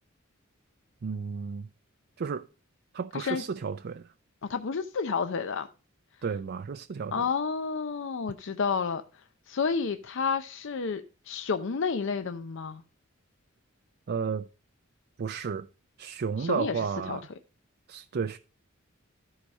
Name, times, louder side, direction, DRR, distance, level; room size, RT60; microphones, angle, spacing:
voice 1, 1.0-1.7 2.2-2.5 2.9-4.1 6.2-7.2 14.1-14.5 15.2-15.7 16.0-17.3 17.9-18.4, right 5 dB, 50° right, 0.4 m, -32 dB
voice 2, 3.1-3.4 4.4-5.7 7.1-12.8 16.4-17.2, left 5 dB, 65° left, 0.6 m, -31 dB
13.5 x 4.9 x 5.2 m
head